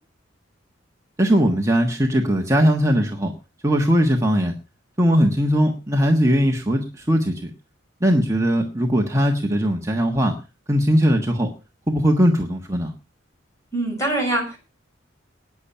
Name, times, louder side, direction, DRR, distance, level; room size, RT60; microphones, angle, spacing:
voice 1, 1.2-3.3 3.6-4.5 5.0-7.5 8.0-10.4 10.7-11.5 11.9-12.9, equal, 15° right, 1 dB, 1.4 m, -19 dB
voice 2, 13.7-14.6, right 1 dB, 15° left, 2 dB, 6.5 m, -23 dB
19.5 x 7.1 x 5.6 m, 0.32 s
head